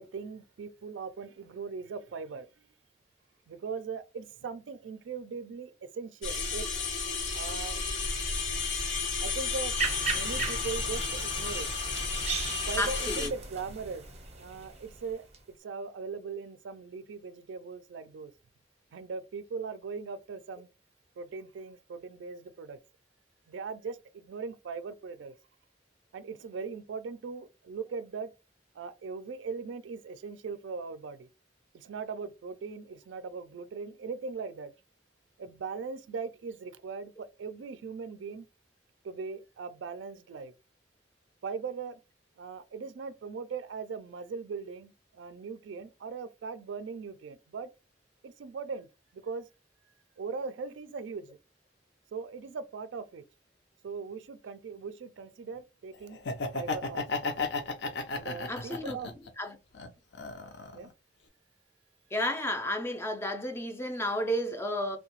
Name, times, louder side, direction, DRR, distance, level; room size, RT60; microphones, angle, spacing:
voice 1, 0.0-2.7 3.5-6.7 7.3-7.8 9.2-9.8 10.0-11.7 12.7-14.1 14.4-18.3 18.9-20.7 21.2-22.8 23.5-25.4 26.1-28.3 28.7-31.3 31.7-34.7 35.4-38.5 39.0-40.5 41.4-42.0 42.4-47.7 48.2-48.9 49.1-49.5 50.2-51.4 52.1-53.2 53.8-56.2 56.5-57.3 58.1-59.1 60.7-60.9, right 5 dB, 80° right, 0.4 m, -39 dB
sound 1, 6.2-13.3, left 4 dB, 85° left, 0.9 m, -32 dB
sound 2, 9.8-15.4, right 3 dB, 35° right, 0.6 m, -37 dB
voice 2, 12.8-13.3 58.5-59.0 59.4-59.5 62.1-65.0, equal, 15° left, 0.4 m, -32 dB
Laughter, 56.1-59.3 59.7-60.8, left 3 dB, 65° left, 0.5 m, -33 dB
2.7 x 2.2 x 2.9 m
head